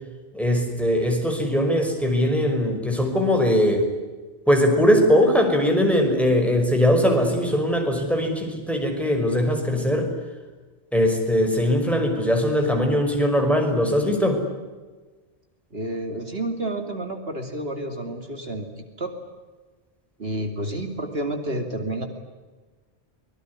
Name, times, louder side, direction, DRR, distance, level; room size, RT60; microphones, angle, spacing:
voice 1, 0.3-3.9 4.5-10.1 10.9-14.4, equal, ahead, 3 dB, 5.7 m, -20 dB
voice 2, 15.7-18.7 19.0-19.1 20.2-22.1, right 1 dB, 60° right, 5 dB, 3.1 m, -30 dB
25.0 x 22.5 x 9.8 m, 1.3 s
omnidirectional pair, 1.1 m